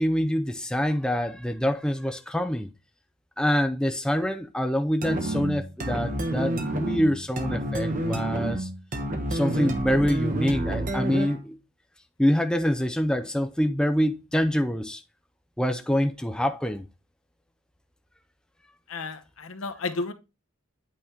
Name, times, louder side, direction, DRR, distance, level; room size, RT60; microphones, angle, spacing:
voice 1, 0.0-2.7 3.4-8.7 9.3-11.6 12.2-15.0 15.6-16.8, equal, 5° left, 0.5 m, -25 dB
sound 1, 5.0-11.5, right 1 dB, 40° right, 1.3 m, -29 dB
voice 2, 18.9-20.1, left 3 dB, 80° left, 0.9 m, -32 dB
8.7 x 4.3 x 3.4 m
head